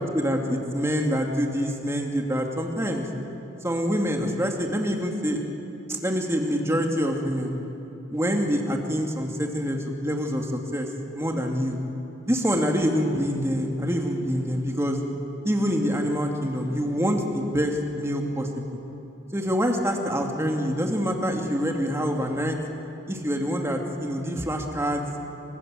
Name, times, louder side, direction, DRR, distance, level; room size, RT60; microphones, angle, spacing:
voice 1, 0.1-3.1 3.6-5.4 5.9-7.6 8.1-10.5 10.7-10.9 11.1-11.8 12.2-15.0 15.4-18.8 19.3-22.6 23.1-25.1, equal, 15° right, 2 dB, 2.6 m, -26 dB
29.0 x 25.5 x 7.8 m, 2.9 s
head